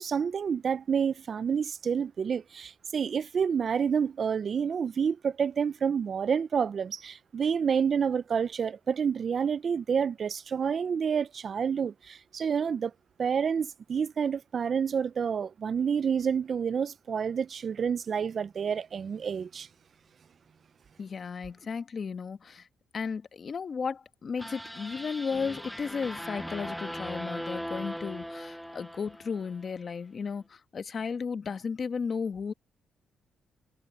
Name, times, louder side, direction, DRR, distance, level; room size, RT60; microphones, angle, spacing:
voice 1, 0.0-12.9 13.2-19.7, right 7 dB, 50° right, 0.4 m, -29 dB
voice 2, 21.0-22.7 22.9-32.5, left 5 dB, 45° left, 1.2 m, -34 dB
sound 1, 24.4-29.7, equal, ahead, 0.6 m, -39 dB
cardioid pair, 90°, 0 cm